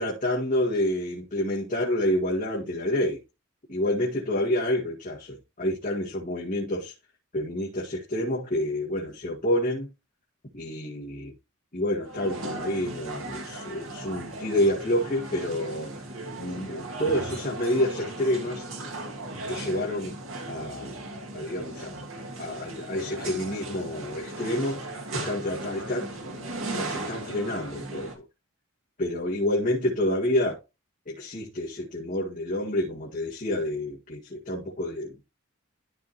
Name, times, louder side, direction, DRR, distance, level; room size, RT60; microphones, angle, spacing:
voice 1, 0.0-3.2 3.7-6.9 7.3-9.9 10.5-11.3 11.7-15.9 16.4-18.6 19.5-20.2 20.5-21.0 21.3-22.0 22.4-26.5 26.7-28.2 29.0-30.6 31.1-35.2, left 1 dB, 40° left, 1.8 m, -28 dB
sound 1, 12.0-28.1, right 2 dB, 75° right, 2.1 m, -37 dB
12.5 x 4.8 x 2.9 m
head